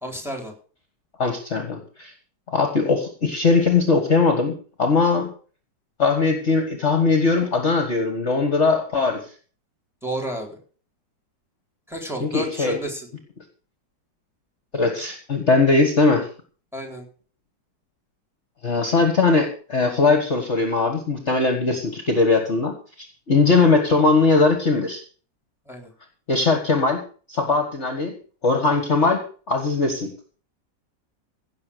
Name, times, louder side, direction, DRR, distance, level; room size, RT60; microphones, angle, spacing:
voice 1, 0.0-0.5 10.0-10.6 11.9-13.1 16.7-17.1 25.7-25.9, equal, ahead, 2 dB, 3.9 m, -31 dB
voice 2, 1.2-2.1 2.5-5.3 6.0-9.2 12.2-12.8 14.7-16.3 18.6-25.0 26.3-27.0 27.3-28.1 28.4-30.1, left 3 dB, 40° left, 5 dB, 1.8 m, -20 dB
16.5 x 6.8 x 6.7 m, 0.42 s
omnidirectional pair, 2.0 m